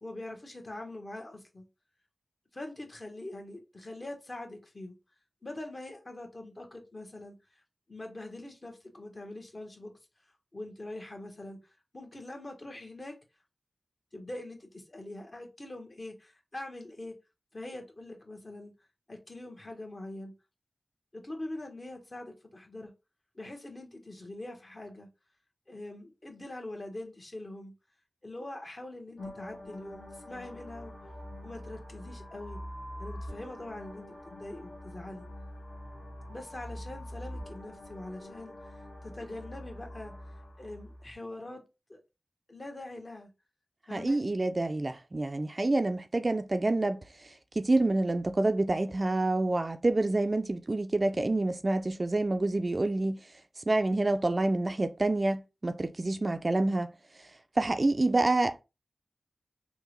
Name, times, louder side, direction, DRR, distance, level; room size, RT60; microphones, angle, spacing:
voice 1, 0.0-1.6 2.5-4.9 5.4-7.4 7.9-9.9 10.5-11.6 11.9-13.1 14.1-17.1 17.5-18.7 19.1-20.3 21.1-22.9 23.3-25.1 25.7-27.7 28.2-30.9 31.4-32.6 33.0-35.2 36.3-38.8 39.0-40.1 40.6-41.6 41.9-42.0 42.5-43.3 43.9-44.3, left 1 dB, 40° left, 1.0 m, -43 dB
sound 1, 29.2-41.1, left 1 dB, 70° left, 1.4 m, -44 dB
voice 2, 43.9-47.0 47.6-53.2 53.7-56.9 57.6-58.6, right 2 dB, 40° right, 0.4 m, -27 dB
3.4 x 2.1 x 3.0 m
cardioid pair, 45°, 0 cm